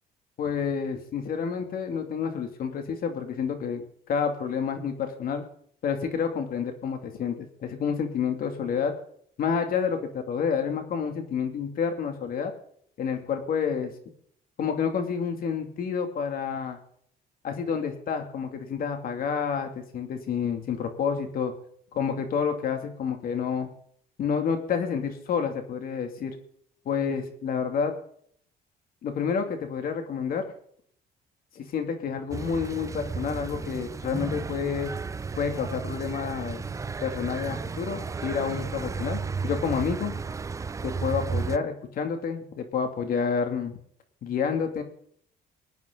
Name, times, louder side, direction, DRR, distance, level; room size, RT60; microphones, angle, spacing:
voice 1, 0.4-5.4 5.8-7.4 7.6-8.9 9.4-12.5 13.0-13.9 14.6-16.8 17.4-21.5 21.9-23.7 24.2-26.3 26.8-27.9 29.0-30.5 31.5-34.9 35.4-36.6 37.0-40.1 40.8-43.8 44.2-44.8, left 6 dB, 60° left, 5 dB, 2.7 m, -29 dB
sound 1, 32.3-41.6, right 5 dB, 20° right, 0.5 m, -33 dB
23.5 x 9.3 x 3.9 m, 0.64 s
cardioid pair, 110°, 17 cm